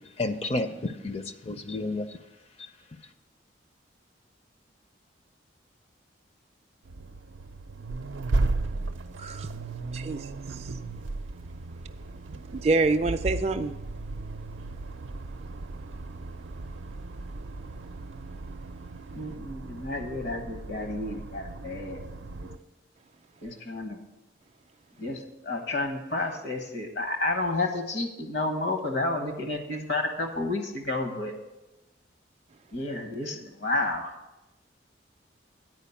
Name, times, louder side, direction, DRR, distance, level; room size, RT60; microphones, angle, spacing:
voice 1, 0.2-2.2 2.6-2.7, left 2 dB, 30° left, 9 dB, 0.5 m, -31 dB
Accelerating revving vroom, 6.8-22.6, right 2 dB, 90° right, 0.5 m, -35 dB
voice 2, 9.9-10.3 12.5-13.7, right 3 dB, 35° right, 6 dB, 0.4 m, -26 dB
voice 3, 19.1-22.0 22.4-22.5 23.4-24.0 25.0-31.3 32.7-34.1, left 2 dB, 65° left, 5 dB, 1.3 m, -31 dB
9.5 x 4.9 x 7.0 m, 0.97 s
head